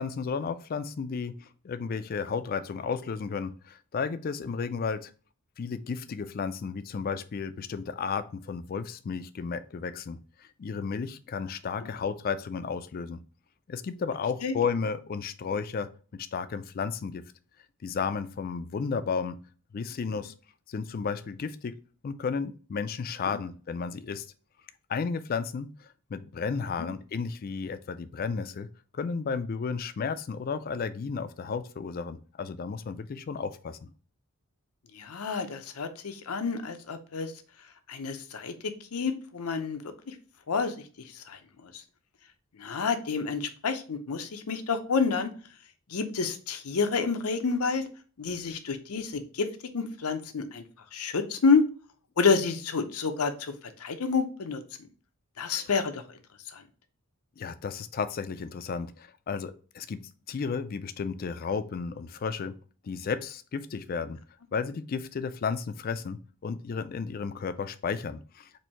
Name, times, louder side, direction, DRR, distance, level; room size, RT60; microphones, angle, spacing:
voice 1, 0.0-5.1 5.6-13.2 13.7-17.2 17.8-19.4 19.7-20.3 20.7-21.7 22.0-24.3 24.9-28.7 28.9-33.8 55.6-55.7 57.4-60.0 60.3-62.5 62.8-64.2 64.5-68.6, left 5 dB, 40° left, 12 dB, 0.3 m, -33 dB
voice 2, 34.9-37.3 37.9-39.8 40.1-40.2 40.5-40.7 41.1-41.8 42.6-45.3 45.9-47.9 48.2-49.5 49.7-50.6 50.9-51.6 52.2-53.5 53.8-54.6 55.4-56.0 56.5-56.6, left 5 dB, 90° left, 8 dB, 0.6 m, -29 dB
4.4 x 2.6 x 4.4 m, 0.39 s
head